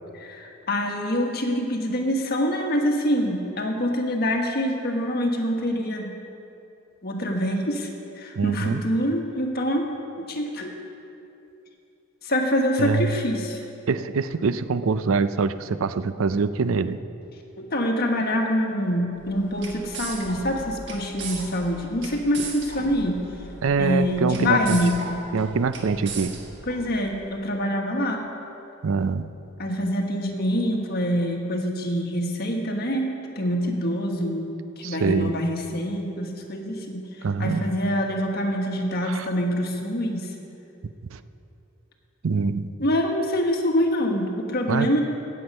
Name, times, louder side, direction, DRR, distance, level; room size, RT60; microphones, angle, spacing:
voice 1, 0.1-6.2 7.0-7.9 8.1-9.9 10.2-10.7 12.2-13.6 17.6-23.2 23.8-24.9 26.7-28.3 29.6-34.5 34.8-40.3 42.8-45.0, equal, 50° left, 2 dB, 1.5 m, -25 dB
voice 2, 8.4-8.8 12.8-13.1 13.9-17.0 23.6-24.8 25.3-26.4 28.8-29.3 34.8-35.3 37.2-37.6 39.0-39.3 41.1-41.2 42.2-42.7 44.7-44.9, right 4 dB, 85° right, 13 dB, 0.5 m, -24 dB
sound 1, 19.2-27.3, right 4 dB, 60° right, 1.4 m, -38 dB
16.5 x 8.0 x 5.4 m, 2.8 s
head